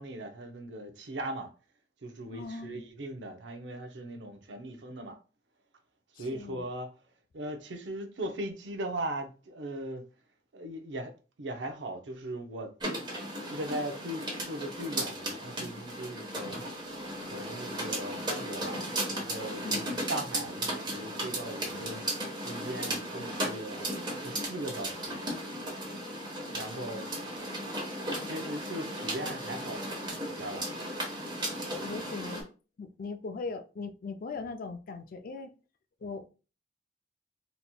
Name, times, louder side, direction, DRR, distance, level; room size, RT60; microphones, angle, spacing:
voice 1, 0.0-1.5 2.0-5.2 6.2-6.9 7.3-10.0 10.5-11.1 11.4-12.7 13.5-16.6 17.2-18.8 19.1-22.0 22.5-23.8 24.1-25.2 26.4-27.1 28.2-29.8 30.3-30.6, right 1 dB, 85° right, 0.7 m, -39 dB
voice 2, 2.3-2.9 6.2-6.7 19.6-19.8 23.3-23.7 31.7-32.4 32.8-35.5 36.0-36.3, left 4 dB, 50° left, 0.4 m, -40 dB
sound 1, 12.8-32.4, right 1 dB, 25° right, 1.1 m, -36 dB
4.1 x 2.9 x 2.2 m
head